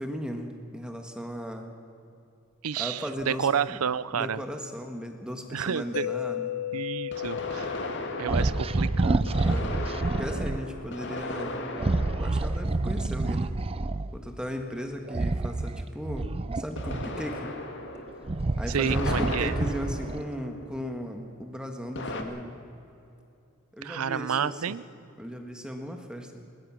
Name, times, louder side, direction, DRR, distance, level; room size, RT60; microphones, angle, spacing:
voice 1, 0.0-1.7 2.7-3.8 4.1-6.5 8.4-8.5 9.4-9.8 10.1-11.6 12.2-13.6 14.1-17.5 18.6-22.6 23.7-24.8 25.2-26.4, equal, 5° right, 4 dB, 1.5 m, -36 dB
voice 2, 2.6-4.4 5.5-6.1 6.7-7.8 8.2-9.3 18.7-19.6 23.8-24.8, right 7 dB, 90° right, 17 dB, 0.6 m, -30 dB
sound 1, 3.2-3.3 7.1-13.6 16.8-21.0 21.9-22.2, left 2 dB, 60° left, 2.0 m, -37 dB
Mallet percussion, 5.9-9.7, left 10 dB, 85° left, 1.0 m, -36 dB
sound 2, 8.3-10.6 11.7-14.1 15.1-17.4 18.0-20.3, right 2 dB, 25° right, 0.5 m, -28 dB
21.0 x 20.5 x 6.2 m, 2.6 s
head